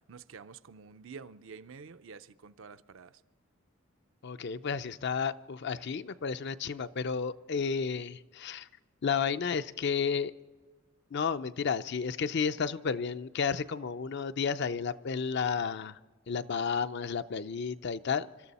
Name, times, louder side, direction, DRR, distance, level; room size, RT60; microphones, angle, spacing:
voice 1, 0.1-3.1, right 5 dB, 65° right, 0.5 m, -48 dB
voice 2, 4.2-8.7 9.0-10.3 11.1-16.0 16.3-18.3, left 6 dB, 55° left, 0.5 m, -32 dB
26.5 x 13.0 x 4.2 m
head